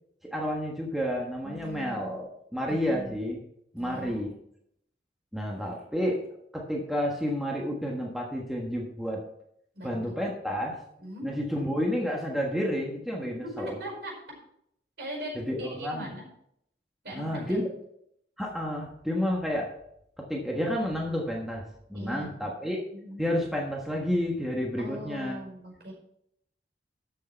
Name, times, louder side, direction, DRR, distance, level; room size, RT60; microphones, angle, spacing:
voice 1, 0.3-3.4 3.7-4.3 5.3-6.2 6.5-9.2 9.8-10.8 11.2-13.8 15.3-16.1 17.1-17.7 18.4-19.7 20.2-22.8 23.2-25.4, equal, ahead, -2 dB, 1.4 m, -30 dB
voice 2, 1.4-2.2 2.7-3.2 3.8-4.2 9.7-10.2 11.0-11.3 13.4-14.1 15.0-16.3 17.0-17.7 21.9-22.4 22.9-23.2 24.8-25.9, equal, 65° right, 0 dB, 5.1 m, -40 dB
13.5 x 6.6 x 4.5 m, 0.73 s
head